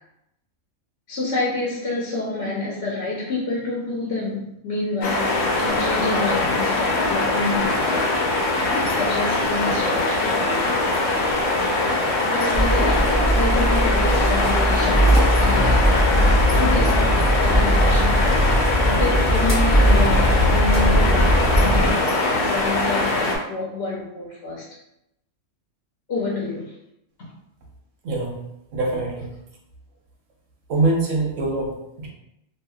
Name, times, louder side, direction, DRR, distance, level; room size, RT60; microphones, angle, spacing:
voice 1, 1.1-5.3 5.6-8.0 9.0-10.8 12.3-15.8 16.6-18.6 18.8-24.7 26.1-26.8 27.2-27.3, left 3 dB, 60° left, -5 dB, 0.8 m, -28 dB
sound 1, 5.0-23.4, left 2 dB, 85° left, 1.0 m, -22 dB
sound 2, 12.5-21.9, equal, 20° left, 0.4 m, -19 dB
voice 2, 28.0-28.4 28.7-29.3 30.7-32.1, right 2 dB, 75° right, -1 dB, 1.0 m, -23 dB
2.7 x 2.4 x 2.3 m, 0.83 s
omnidirectional pair, 1.3 m